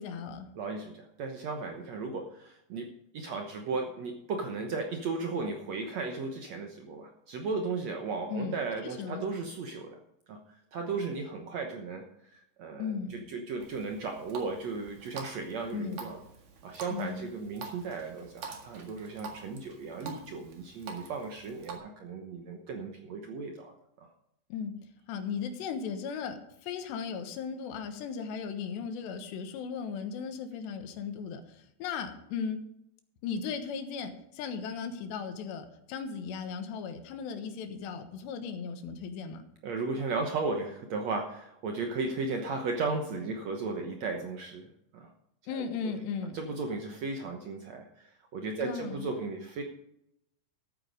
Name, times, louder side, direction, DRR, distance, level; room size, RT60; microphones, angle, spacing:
voice 1, 0.0-0.5 8.3-9.2 12.8-13.3 15.7-16.1 16.9-17.3 24.5-24.7 25.1-32.7 33.2-39.4 45.5-46.4 48.6-49.1, left 6 dB, 90° left, 8 dB, 3.5 m, -37 dB
voice 2, 0.6-2.9 3.1-10.0 10.3-10.4 10.7-16.2 16.6-24.1 39.6-45.1 45.5-45.9 46.3-49.6, right 4 dB, 80° right, 4 dB, 1.5 m, -35 dB
Water tap faucet, 13.6-21.8, right 5 dB, 50° right, 2.7 m, -47 dB
13.0 x 9.2 x 5.2 m, 0.79 s
omnidirectional pair, 4.8 m